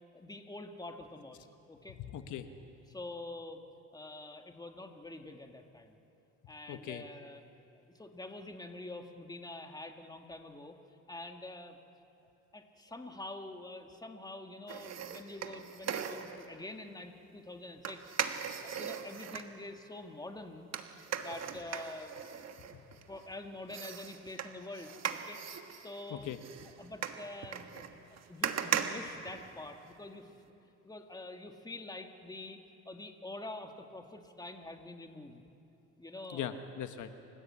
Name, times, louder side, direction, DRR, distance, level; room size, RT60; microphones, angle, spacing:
voice 1, 0.1-2.0 2.9-3.7 3.9-6.0 6.5-7.4 7.9-10.8 11.1-11.8 12.5-18.0 18.6-20.7 21.2-22.8 23.1-25.4 25.8-26.3 26.8-28.0 28.3-30.3 30.8-32.6 32.9-35.4 36.0-36.6, left 2 dB, 15° left, 5 dB, 1.9 m, -46 dB
voice 2, 1.9-2.5 6.7-7.0 26.1-26.4 36.3-37.1, left 10 dB, 75° left, 8 dB, 1.3 m, -40 dB
sound 1, 14.7-16.5 17.8-19.5 20.7-23.3 23.7-29.9 30.3-30.4, right 8 dB, 60° right, 1.6 m, -39 dB
28.0 x 15.5 x 8.6 m, 2.8 s
cardioid pair, 90°, 30 cm